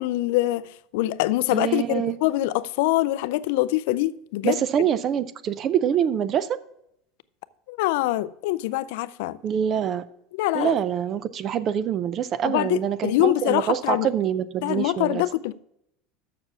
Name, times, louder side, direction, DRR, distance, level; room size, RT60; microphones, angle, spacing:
voice 1, 0.0-4.6 7.7-9.4 10.3-10.8 12.4-14.1 14.6-15.5, left 16 dB, 75° left, 0.4 m, -24 dB
voice 2, 1.5-2.2 4.4-6.6 9.4-10.1 10.5-15.2, right 9 dB, 30° right, 0.4 m, -25 dB
6.8 x 6.7 x 5.9 m
cardioid pair, 160°, 0 cm